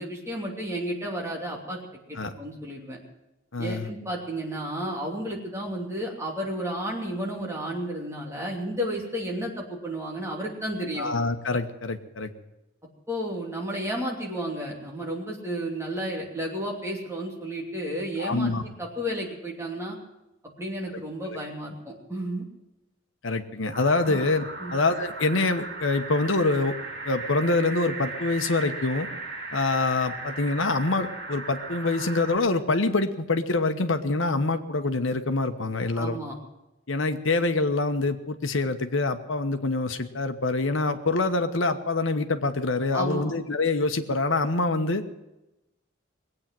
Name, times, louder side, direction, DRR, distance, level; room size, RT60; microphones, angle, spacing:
voice 1, 0.0-1.8 2.1-3.0 3.6-11.1 13.1-20.0 20.6-22.5 24.1-24.2 24.6-24.8 35.9-36.3 42.9-43.4, right 1 dB, 15° right, -1 dB, 2.8 m, -32 dB
voice 2, 3.5-3.9 11.0-12.3 18.2-18.6 21.3-21.4 23.2-24.4 24.7-26.8 27.0-29.1 29.5-36.2 36.9-45.0, left 3 dB, 80° left, 8 dB, 1.2 m, -25 dB
sound 1, 23.7-32.4, right 3 dB, 65° right, 5.7 m, -37 dB
20.5 x 8.8 x 7.7 m, 0.95 s
head